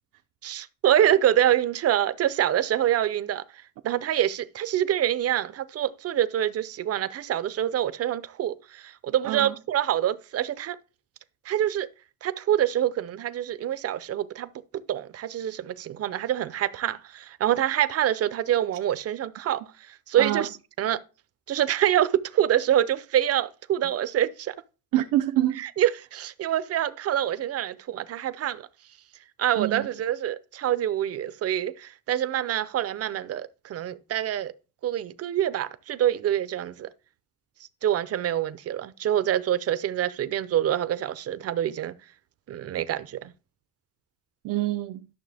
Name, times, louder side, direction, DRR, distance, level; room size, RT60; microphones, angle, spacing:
voice 1, 0.4-3.4 3.8-10.8 11.4-11.9 12.2-20.5 20.8-21.0 21.5-24.5 25.6-28.7 29.4-34.5 34.8-36.9 37.8-41.9 42.5-43.3, right 11 dB, 50° right, 0.7 m, -26 dB
voice 2, 9.2-9.5 20.2-20.5 24.9-25.7 29.6-29.9 44.4-45.1, right 14 dB, 80° right, 0.8 m, -26 dB
12.0 x 6.7 x 3.4 m
cardioid pair, 165°, 32 cm